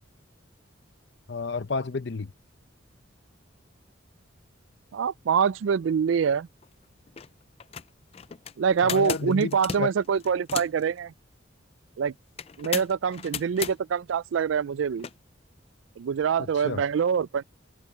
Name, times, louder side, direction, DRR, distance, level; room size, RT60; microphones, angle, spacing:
voice 1, 1.3-2.3 8.8-9.9 16.5-16.8, left 4 dB, 60° left, 0.7 m, -31 dB
voice 2, 4.9-6.5 8.6-11.1 12.0-12.1 12.6-15.1 16.0-17.4, right 6 dB, 75° right, 0.4 m, -25 dB
sound 1, 6.6-6.7 7.1-7.3 7.6-10.8 12.4-13.8 15.0-15.1, left 7 dB, 30° left, 0.4 m, -35 dB
head